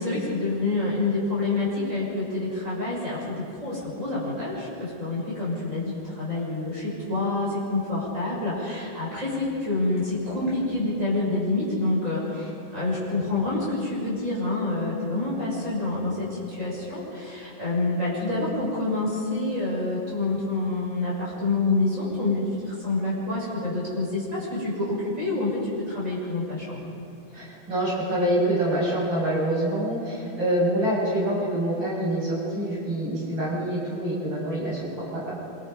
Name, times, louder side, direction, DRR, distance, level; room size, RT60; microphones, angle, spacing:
voice 1, 0.0-26.8, left 2 dB, 35° right, -7 dB, 7.7 m, -27 dB
voice 2, 27.3-35.3, right 1 dB, 70° right, -7 dB, 7.7 m, -26 dB
26.0 x 24.0 x 5.3 m, 2.7 s
omnidirectional pair, 2.2 m